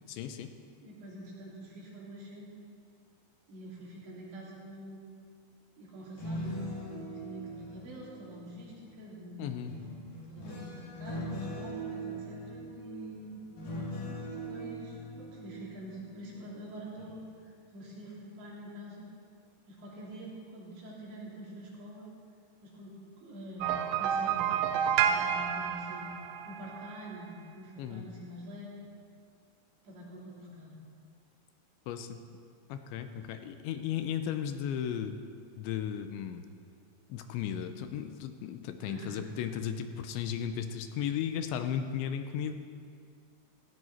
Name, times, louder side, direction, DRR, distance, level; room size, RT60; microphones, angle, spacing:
voice 1, 0.1-0.5 9.4-9.7 27.8-28.1 31.9-32.2 32.7-35.2 35.6-36.5 37.1-42.5, left 9 dB, 85° left, 8 dB, 3.1 m, -35 dB
voice 2, 0.8-2.5 3.5-5.1 5.8-9.6 10.3-13.4 14.1-19.1 19.7-22.1 22.6-26.2 26.5-28.7 29.8-30.7 38.8-39.3, equal, 70° right, -5 dB, 5.5 m, -46 dB
sound 1, 6.0-8.9 9.7-16.6 17.0-17.3, equal, 50° left, 4.2 m, -41 dB
sound 2, 23.6-27.0, right 8 dB, 85° right, 3.2 m, -30 dB
17.5 x 16.0 x 4.4 m, 2.2 s
omnidirectional pair, 5.4 m